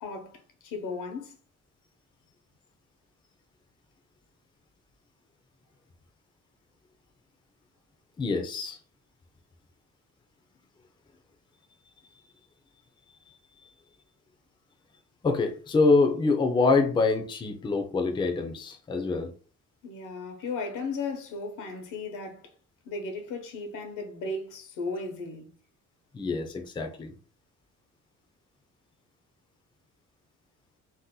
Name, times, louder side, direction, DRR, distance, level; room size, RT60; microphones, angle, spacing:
voice 1, 0.0-1.4 19.8-22.5 22.8-25.5, left 3 dB, 90° left, 0.9 m, -36 dB
voice 2, 8.2-8.8 13.3-13.4 13.6-13.7 15.2-19.3 26.1-27.1, left 3 dB, 15° left, 0.4 m, -25 dB
2.7 x 2.1 x 3.7 m
cardioid pair, 150°, 30 cm